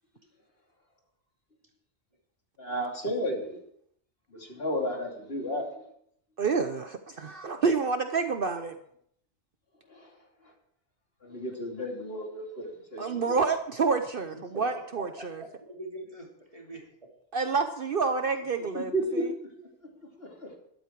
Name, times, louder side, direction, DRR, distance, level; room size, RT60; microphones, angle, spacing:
voice 1, 2.6-3.6 4.3-5.7 9.9-10.1 11.2-13.3 18.7-19.5 20.2-20.6, equal, 55° left, 0 dB, 3.1 m, -33 dB
voice 2, 6.4-8.8 13.0-15.4 17.3-19.3, right 4 dB, 55° right, 8 dB, 0.9 m, -28 dB
voice 3, 15.2-17.1, right 1 dB, 30° right, -1 dB, 3.1 m, -43 dB
13.0 x 12.0 x 4.6 m, 0.69 s
omnidirectional pair, 1.2 m